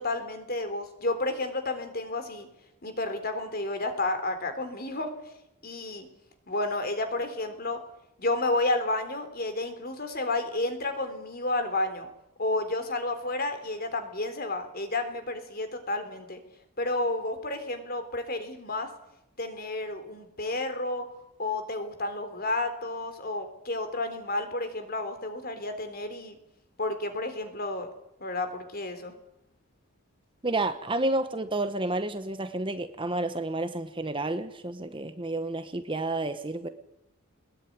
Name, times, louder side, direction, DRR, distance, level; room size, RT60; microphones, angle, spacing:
voice 1, 0.0-2.5 2.8-5.1 5.6-6.1 6.5-7.8 8.2-12.1 12.4-16.4 16.8-18.9 19.4-21.1 21.4-26.4 26.8-27.9 28.2-29.1, left 2 dB, 45° left, 3.6 m, -31 dB
voice 2, 30.4-36.7, right 2 dB, 25° right, 1.1 m, -30 dB
21.0 x 20.5 x 9.5 m
head